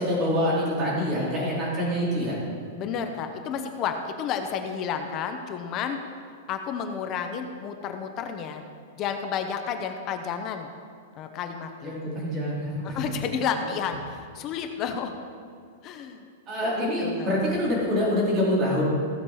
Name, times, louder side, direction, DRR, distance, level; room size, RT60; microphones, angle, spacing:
voice 1, 0.0-2.4 11.8-13.1 16.5-18.9, equal, 20° right, -5 dB, 3.2 m, -25 dB
voice 2, 2.8-6.0 6.5-8.6 9.0-10.7 11.2-11.9 12.8-15.1 15.8-16.2 17.0-17.4, left 7 dB, 25° left, 6 dB, 0.7 m, -31 dB
15.5 x 7.3 x 4.8 m, 2.2 s
supercardioid pair, 175°, 0 cm